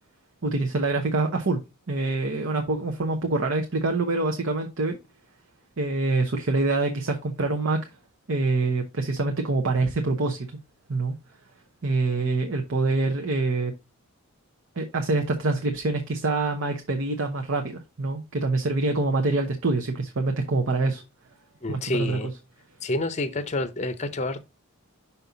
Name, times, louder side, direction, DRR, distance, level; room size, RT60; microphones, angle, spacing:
voice 1, 0.4-1.6 1.9-5.0 5.8-7.8 8.3-10.5 10.9-11.1 11.8-13.7 14.8-21.0 21.7-22.2, right 3 dB, 60° right, 0.9 m, -25 dB
voice 2, 21.6-22.3 22.8-24.4, left 2 dB, 30° left, 0.6 m, -28 dB
5.8 x 5.4 x 3.9 m
head